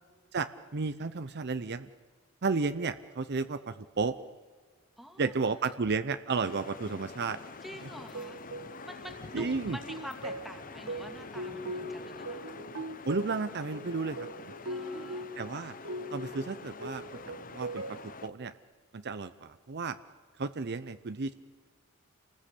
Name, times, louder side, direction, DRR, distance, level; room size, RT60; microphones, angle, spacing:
voice 1, 0.3-1.9 2.4-4.2 5.2-7.4 9.3-9.8 13.0-14.5 15.4-15.8 16.1-18.5 18.9-20.0 20.4-21.3, right 4 dB, 50° right, 12 dB, 0.7 m, -33 dB
voice 2, 5.0-5.3 5.6-5.7 7.6-8.4 8.8-12.6 14.6-15.3, equal, ahead, 5 dB, 2.5 m, -47 dB
sound 1, 6.3-18.3, left 4 dB, 40° left, 0.9 m, -46 dB
sound 2, 8.1-18.1, right 1 dB, 75° right, 1.7 m, -41 dB
28.0 x 19.5 x 8.4 m, 1.5 s
head